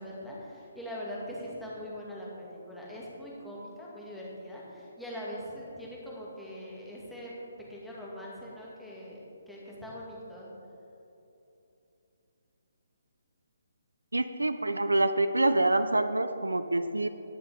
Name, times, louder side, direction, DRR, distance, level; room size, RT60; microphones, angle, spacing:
voice 1, 0.0-7.3 7.7-10.5, equal, ahead, -7 dB, 2.1 m, -42 dB
voice 2, 14.1-17.1, right 2 dB, 80° right, 11 dB, 0.5 m, -26 dB
19.0 x 6.7 x 3.6 m, 2.9 s
figure-of-eight pair, 140°, 0 cm